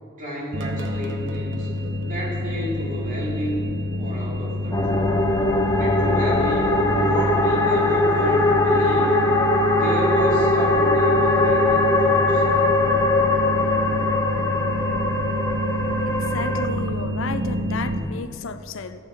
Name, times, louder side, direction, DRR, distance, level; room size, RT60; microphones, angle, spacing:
voice 1, 0.2-1.7 2.0-5.2 5.8-9.1 9.7-12.5, equal, 40° right, -5 dB, 3.1 m, -32 dB
sound 1, 0.5-18.0, equal, 65° right, 1.0 m, -28 dB
sound 2, 4.7-16.7, left 2 dB, 15° left, 0.9 m, -20 dB
voice 2, 16.3-19.0, left 5 dB, 70° left, 11 dB, 0.5 m, -32 dB
15.0 x 8.1 x 4.5 m, 2.7 s
head